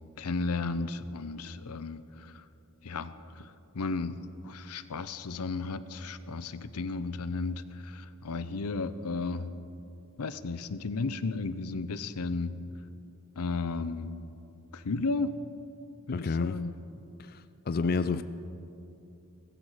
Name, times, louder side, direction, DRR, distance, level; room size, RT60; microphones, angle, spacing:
voice 1, 0.0-2.4 2.8-9.5 10.2-12.6 13.4-14.1 14.7-15.4 16.1-16.7 17.8-18.2, left 3 dB, 90° left, 13 dB, 0.7 m, -34 dB
voice 2, 16.1-16.6 17.2-18.2, left 4 dB, 45° left, 12 dB, 0.4 m, -30 dB
17.0 x 15.5 x 5.0 m, 2.7 s
head